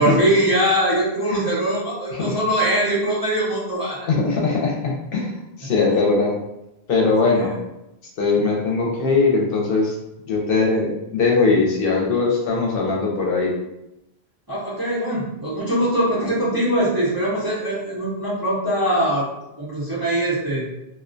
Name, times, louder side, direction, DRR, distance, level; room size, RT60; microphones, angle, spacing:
voice 1, 0.0-4.1 5.6-5.7 7.2-7.5 14.5-19.3 19.6-20.6, right 1 dB, 30° right, -9 dB, 0.5 m, -22 dB
voice 2, 4.1-5.3 5.6-6.3 6.9-7.5 8.2-10.0 10.3-13.5 16.2-16.3, left 4 dB, 65° left, -2 dB, 0.7 m, -20 dB
2.3 x 2.1 x 2.5 m, 0.90 s
omnidirectional pair, 1.1 m